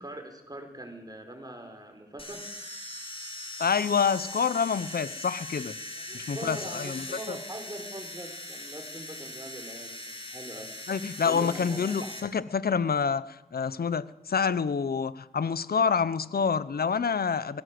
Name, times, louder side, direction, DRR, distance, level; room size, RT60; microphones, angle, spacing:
voice 1, 0.0-2.4 6.0-10.7 11.2-12.1, right 1 dB, 25° right, 5.4 m, -42 dB
sound 1, 2.2-12.2, left 1 dB, 35° left, 5.2 m, -40 dB
voice 2, 3.6-5.8 6.1-7.4 10.9-17.6, left 6 dB, 75° left, 0.9 m, -27 dB
21.0 x 17.5 x 7.8 m
cardioid pair, 40°, 16 cm